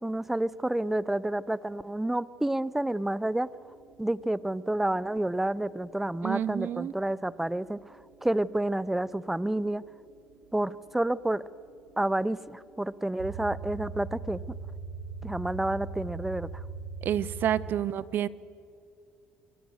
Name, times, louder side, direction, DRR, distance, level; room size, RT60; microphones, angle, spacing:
voice 1, 0.0-3.5 4.0-7.8 8.2-9.8 10.5-11.4 12.0-14.4 15.2-16.5, right 1 dB, 5° right, 19 dB, 0.6 m, -29 dB
sound 1, 3.5-17.7, right 5 dB, 75° right, 1.1 m, -42 dB
voice 2, 6.2-6.9 17.0-18.3, right 10 dB, 55° right, 19 dB, 0.7 m, -29 dB
27.5 x 22.5 x 6.4 m, 2.4 s
cardioid pair, 95°, 4 cm